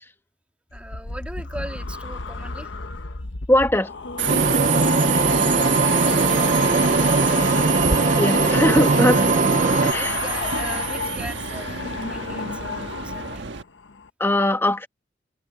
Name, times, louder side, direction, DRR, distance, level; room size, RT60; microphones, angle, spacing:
sound 1, 0.7-13.4 13.7-14.1, left 4 dB, 85° left, 1.1 m, -29 dB
voice 1, 0.7-2.7 5.9-7.9 9.6-13.5, right 1 dB, 5° right, 3.2 m, -39 dB
voice 2, 3.5-3.9 8.2-9.2 9.8-10.0 14.2-14.9, left 1 dB, 15° left, 1.2 m, -20 dB
Subway metro underground, 4.2-13.6, right 8 dB, 80° right, 1.5 m, -27 dB
sound 2, 4.3-9.9, right 4 dB, 45° right, 0.6 m, -20 dB
head